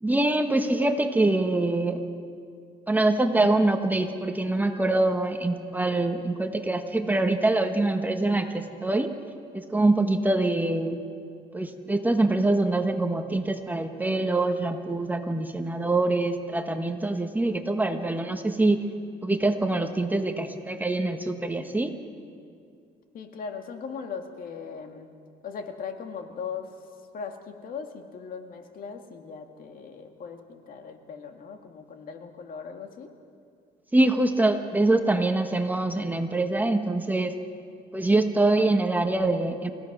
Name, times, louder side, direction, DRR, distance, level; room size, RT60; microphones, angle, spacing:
voice 1, 0.0-2.0 2.9-9.1 9.5-11.0 11.5-18.8 19.2-21.9 33.9-37.3 37.9-39.7, right 2 dB, 10° right, 5 dB, 1.4 m, -24 dB
voice 2, 23.1-25.1 25.4-26.7 27.1-33.1, left 6 dB, 55° left, 5 dB, 2.1 m, -39 dB
29.0 x 16.5 x 6.1 m, 2.3 s
cardioid pair, 110°, 17 cm